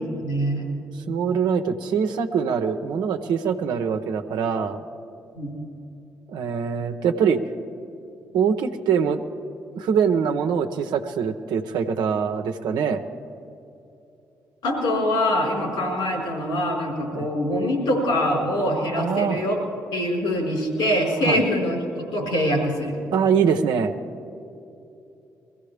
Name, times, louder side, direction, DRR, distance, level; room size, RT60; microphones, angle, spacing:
voice 1, 0.2-0.7 5.3-5.5 14.6-19.6 19.9-21.8 22.1-23.0, left 1 dB, 80° left, -2 dB, 4.4 m, -24 dB
voice 2, 1.1-4.8 6.3-7.4 8.3-9.2 9.7-13.0 17.1-17.3 19.0-19.4 21.2-21.5 23.1-23.9, right 6 dB, 75° right, 6 dB, 0.8 m, -23 dB
22.5 x 15.5 x 3.4 m, 2.8 s
hypercardioid pair, 45°, 7 cm